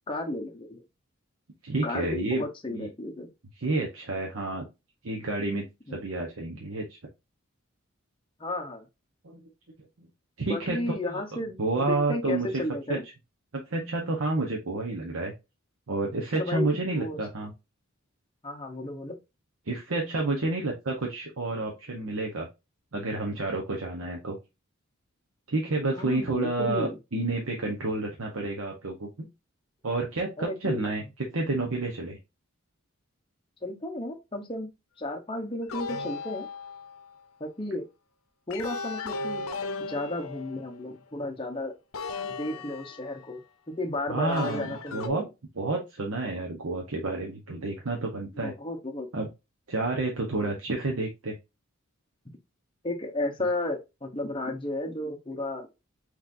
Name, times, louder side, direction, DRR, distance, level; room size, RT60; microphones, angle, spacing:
voice 1, 0.1-0.8 1.8-3.3 5.9-6.0 8.4-8.9 10.5-11.6 11.9-13.0 16.3-17.2 18.4-19.2 26.0-27.0 30.4-30.9 33.6-34.7 35.0-36.5 37.4-37.9 38.5-39.4 39.9-41.7 42.4-43.4 43.7-45.3 48.4-49.1 52.8-55.7, left 2 dB, 25° left, 0.9 m, -33 dB
voice 2, 1.6-2.4 2.7-2.9 3.6-4.7 5.0-5.6 5.9-6.8 9.2-9.4 10.0-10.1 10.4-10.9 11.6-12.5 12.9-13.0 13.5-15.3 15.9-17.5 19.7-22.5 22.9-24.4 25.5-29.3 29.8-31.0 31.3-32.2 44.1-45.2 45.6-48.5 49.1-49.3 49.7-51.4, right 2 dB, 80° right, 1.0 m, -29 dB
sound 1, 35.7-37.1 38.5-40.9 41.9-43.4 44.3-45.1, left 4 dB, 80° left, 0.7 m, -36 dB
5.9 x 3.2 x 2.6 m
head